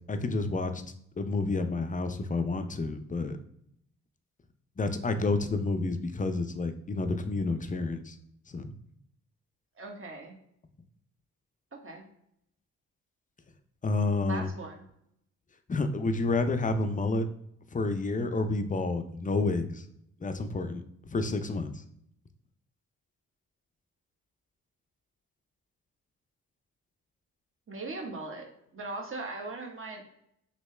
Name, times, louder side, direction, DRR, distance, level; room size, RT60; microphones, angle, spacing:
voice 1, 0.1-0.8 1.2-3.4 4.8-8.2 8.5-8.7 13.8-14.5 15.7-17.3 17.7-19.8 20.2-20.8 21.1-21.7, left 3 dB, 25° left, 9 dB, 0.5 m, -29 dB
voice 2, 9.8-10.3 11.7-12.0 14.2-14.8 27.7-30.0, right 3 dB, 40° right, 1 dB, 1.1 m, -39 dB
3.1 x 2.8 x 3.2 m, 0.73 s
supercardioid pair, 50°, 34 cm